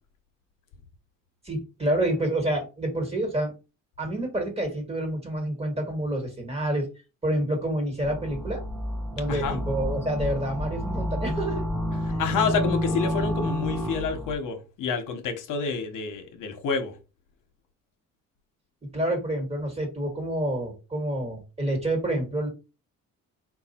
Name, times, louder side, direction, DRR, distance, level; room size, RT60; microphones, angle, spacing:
voice 1, 1.4-3.5 4.0-6.9 7.2-8.6 9.1-11.7 12.1-12.2 18.9-22.5, right 1 dB, 20° right, 1.5 m, -28 dB
sound 1, 8.0-14.3, equal, 5° left, 0.6 m, -29 dB
voice 2, 9.3-9.6 12.0-17.0, left 5 dB, 70° left, 0.9 m, -28 dB
4.6 x 2.4 x 4.2 m
cardioid pair, 150°, 33 cm